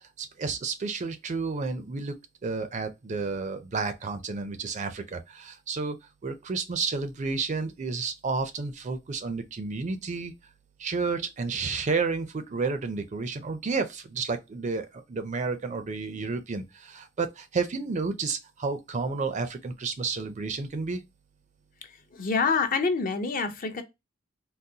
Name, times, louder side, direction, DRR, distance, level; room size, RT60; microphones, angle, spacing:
voice 1, 0.2-2.1 2.4-10.4 10.8-21.0, right 4 dB, 35° right, 0.4 m, -31 dB
voice 2, 21.8-23.8, left 4 dB, 45° left, 0.5 m, -27 dB
3.8 x 2.1 x 2.7 m
head